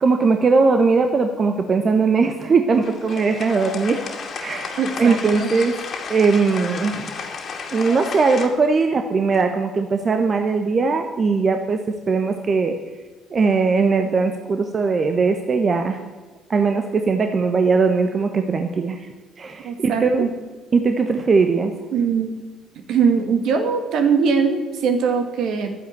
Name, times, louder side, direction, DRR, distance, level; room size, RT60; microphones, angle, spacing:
voice 1, 0.0-4.0 4.4-5.7 6.1-7.2 7.7-12.8 13.3-16.0 16.5-19.1 19.4-20.3 20.7-21.7, right 4 dB, 40° right, 6 dB, 1.3 m, -19 dB
sound 1, 2.7-8.5, left 5 dB, 50° left, 2.3 m, -32 dB
voice 2, 4.8-5.5 19.6-20.3 21.9-22.4 22.9-25.7, right 6 dB, 65° right, 6 dB, 2.1 m, -21 dB
12.0 x 10.0 x 8.3 m, 1.3 s
hypercardioid pair, 55°, 0 cm